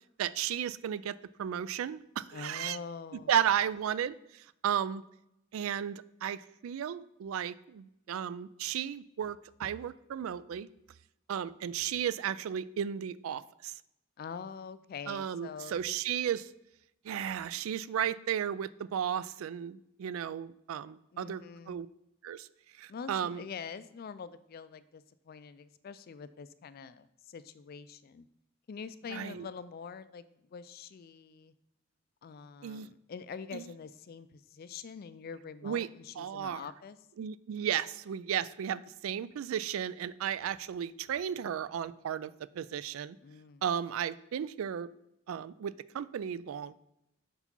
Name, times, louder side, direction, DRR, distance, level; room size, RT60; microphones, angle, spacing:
voice 1, 0.2-2.8 3.3-5.0 5.5-10.7 11.3-13.7 15.1-16.5 17.0-21.9 22.2-22.5 22.8-23.4 29.1-29.5 32.6-32.9 33.5-33.6 35.6-35.9 36.2-36.7 37.2-43.2 43.6-44.9 45.3-46.8, right 9 dB, 90° right, 18 dB, 0.3 m, -34 dB
voice 2, 2.3-3.4 14.2-16.0 20.8-21.8 22.9-28.3 28.7-30.2 30.5-31.5 32.2-37.0 43.2-43.6, left 6 dB, 50° left, 14 dB, 0.3 m, -45 dB
5.5 x 4.8 x 5.3 m, 0.82 s
head